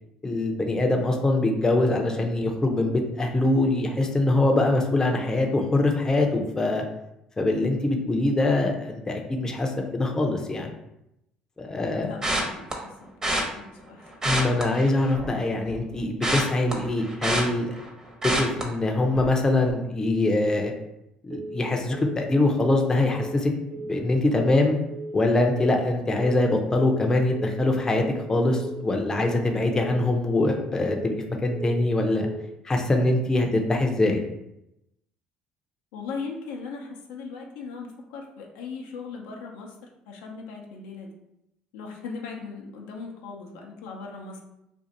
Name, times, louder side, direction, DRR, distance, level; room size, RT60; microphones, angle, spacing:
voice 1, 0.2-6.8 7.4-10.7 11.6-12.1 14.2-17.8 18.4-20.7 21.2-23.5 23.8-24.8 25.1-32.3 32.6-34.2, left 2 dB, 20° left, 2 dB, 0.6 m, -23 dB
voice 2, 12.0-14.1 35.9-41.1 41.7-44.4, left 4 dB, 85° left, 0 dB, 0.6 m, -39 dB
sound 1, 12.2-12.7 13.2-13.4 14.1-15.4 15.7-17.9 18.2-18.6 19.1-19.4 19.6-19.7, right 1 dB, 20° right, 0.9 m, -27 dB
Telephone, 21.3-21.6 21.9-22.2 22.5-22.8 23.1-23.4 23.7-24.0 24.3-24.6 24.9-25.2 25.5-25.8 26.1-26.4 26.7-27.0 27.3-27.6 27.9-28.2 28.5-28.8 29.1-29.4 29.7-30.0 30.3-30.6 30.9-31.2 31.5-31.8 32.1-32.4, right 2 dB, 40° right, 0.6 m, -37 dB
2.6 x 2.4 x 4.1 m, 0.85 s
supercardioid pair, 75°, 3 cm